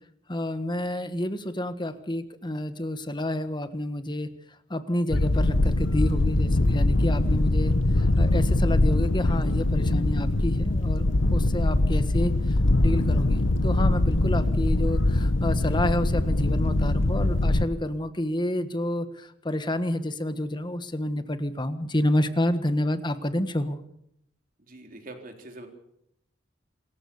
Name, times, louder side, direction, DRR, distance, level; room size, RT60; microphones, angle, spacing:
voice 1, 0.3-4.3 4.7-7.7 8.2-11.0 11.3-12.3 12.8-23.8, left 1 dB, 25° left, 11 dB, 1.4 m, -29 dB
sound 1, 5.1-17.6, left 2 dB, 80° left, 1.1 m, -22 dB
voice 2, 24.6-25.7, right 2 dB, 45° right, 4 dB, 3.8 m, -43 dB
26.5 x 14.5 x 7.0 m, 0.75 s
head